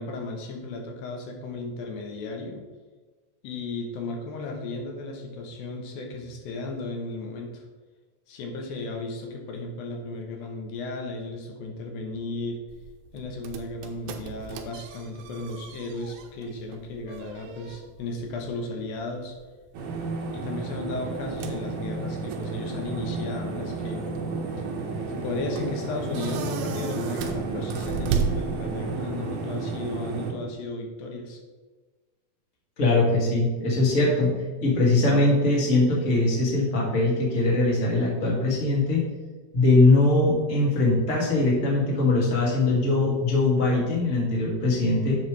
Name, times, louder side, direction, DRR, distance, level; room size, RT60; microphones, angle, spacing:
voice 1, 0.0-2.6 3.4-7.7 8.3-12.7 13.1-19.4 20.3-24.1 25.1-31.4, left 2 dB, 70° left, 2 dB, 2.7 m, -35 dB
sound 1, 12.7-29.1, right 6 dB, 80° right, 2.5 m, -37 dB
sound 2, 19.7-30.3, right 3 dB, 60° right, 2.7 m, -32 dB
voice 2, 32.8-34.3 34.6-39.0 39.5-45.2, left 2 dB, 25° left, -4 dB, 2.0 m, -21 dB
10.5 x 7.6 x 3.3 m, 1.3 s
omnidirectional pair, 4.5 m